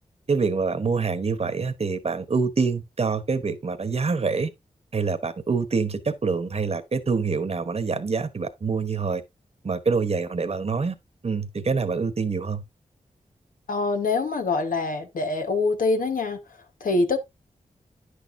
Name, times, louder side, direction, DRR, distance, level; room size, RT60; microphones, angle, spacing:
voice 1, 0.3-4.5 4.9-9.2 9.6-10.9 11.2-12.6, right 4 dB, 45° right, 1.2 m, -26 dB
voice 2, 13.7-16.4 16.8-17.2, left 3 dB, 80° left, 1.3 m, -24 dB
9.9 x 6.5 x 2.7 m
cardioid pair, 60°, 14 cm